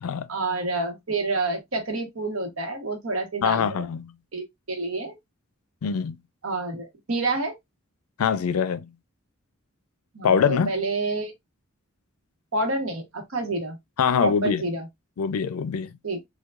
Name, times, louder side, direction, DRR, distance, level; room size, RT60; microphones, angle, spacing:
voice 1, 0.3-3.9 4.3-5.2 6.4-7.6 10.1-11.3 12.5-13.8 14.2-14.9 16.0-16.2, right 2 dB, 75° right, 1.0 m, -28 dB
voice 2, 3.4-4.1 5.8-6.2 8.2-8.9 10.2-10.7 14.0-14.6 15.2-15.9, left 6 dB, 90° left, 0.4 m, -23 dB
4.5 x 2.3 x 2.3 m
head